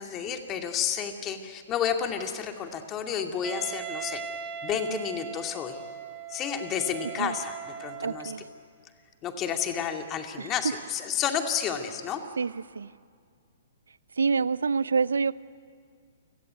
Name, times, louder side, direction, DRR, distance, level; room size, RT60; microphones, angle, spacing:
voice 1, 0.0-4.2 4.6-5.8 6.3-8.3 9.2-12.2, left 8 dB, 25° left, 5 dB, 2.4 m, -31 dB
Wind instrument woodwind instrument, 3.4-8.4, right 6 dB, 20° right, 2.0 m, -39 dB
voice 2, 8.0-8.4 10.4-10.5 12.4-12.9 14.2-15.3, right 5 dB, 75° right, 20 dB, 0.6 m, -27 dB
29.0 x 17.0 x 9.5 m, 2.1 s
figure-of-eight pair, 120°, 0 cm